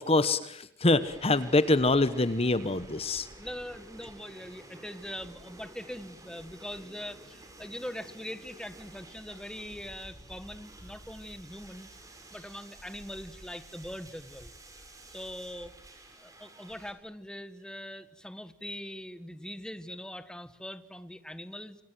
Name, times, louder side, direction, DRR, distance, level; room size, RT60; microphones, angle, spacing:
voice 1, 0.0-3.3, left 2 dB, 35° left, 13 dB, 1.1 m, -25 dB
sound 1, 1.0-16.9, right 1 dB, 20° right, 6.4 m, -51 dB
voice 2, 3.4-11.9 12.3-14.5 15.1-15.7 16.2-21.8, left 1 dB, 5° left, 12 dB, 1.5 m, -42 dB
29.0 x 25.5 x 7.7 m, 0.74 s
head